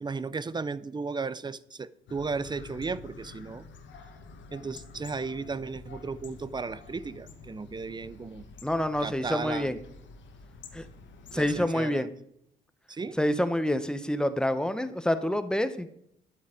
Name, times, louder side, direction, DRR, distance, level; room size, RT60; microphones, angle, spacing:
voice 1, 0.0-3.6 4.5-8.4 9.0-9.7 11.3-12.1 12.9-13.2, right 4 dB, 20° right, 0.5 m, -35 dB
sound 1, 2.1-11.7, left 4 dB, 70° left, 1.4 m, -48 dB
voice 2, 8.6-9.8 10.7-10.8 11.3-12.1 13.2-15.9, left 1 dB, 5° left, 0.9 m, -27 dB
10.5 x 8.0 x 5.0 m
cardioid pair, 90°, 20 cm